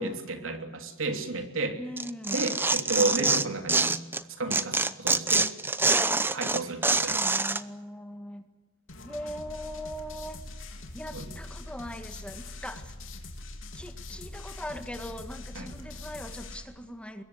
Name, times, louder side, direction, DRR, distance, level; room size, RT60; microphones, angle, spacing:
voice 1, 0.0-1.8 2.3-3.9 4.4-5.5 6.3-7.2 11.1-11.2 15.5-15.7, right 2 dB, 85° right, 5 dB, 3.1 m, -32 dB
voice 2, 1.8-2.5 2.9-3.3 7.1-8.5 9.0-10.4 10.9-12.9 13.7-17.2, equal, 5° left, 7 dB, 1.7 m, -40 dB
Tearing, 2.0-4.2 4.5-7.6, right 3 dB, 10° right, 0.8 m, -25 dB
sound 1, 8.9-16.6, left 2 dB, 75° left, 3.3 m, -43 dB
24.5 x 22.0 x 8.0 m, 1.2 s
head